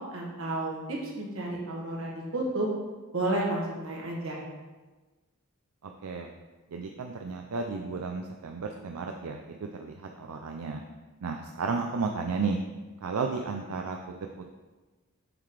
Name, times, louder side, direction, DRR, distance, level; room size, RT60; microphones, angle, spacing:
voice 1, 0.1-2.7 3.1-4.4, right 2 dB, 65° right, -2 dB, 1.6 m, -31 dB
voice 2, 5.8-6.3 6.7-10.8 11.2-12.6 13.0-14.0 14.3-14.5, right 4 dB, 85° right, 3 dB, 0.5 m, -33 dB
7.9 x 3.8 x 4.8 m, 1.3 s
head